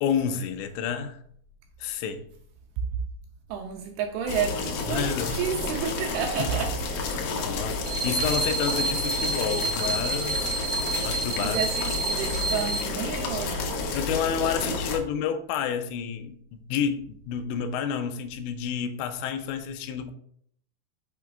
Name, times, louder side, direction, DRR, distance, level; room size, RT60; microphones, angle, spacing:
voice 1, 0.0-1.2 1.8-2.3 4.9-5.4 6.4-6.5 7.4-10.4 11.0-11.7 13.9-20.1, left 7 dB, 90° left, 2.9 m, -29 dB
voice 2, 3.5-6.8 11.4-13.8 14.6-15.1, right 7 dB, 80° right, 2.4 m, -31 dB
sound 1, 4.3-15.0, left 4 dB, 75° left, 2.1 m, -31 dB
sound 2, 7.8-12.8, right 4 dB, 40° right, 2.4 m, -29 dB
8.3 x 7.0 x 2.3 m
omnidirectional pair, 5.1 m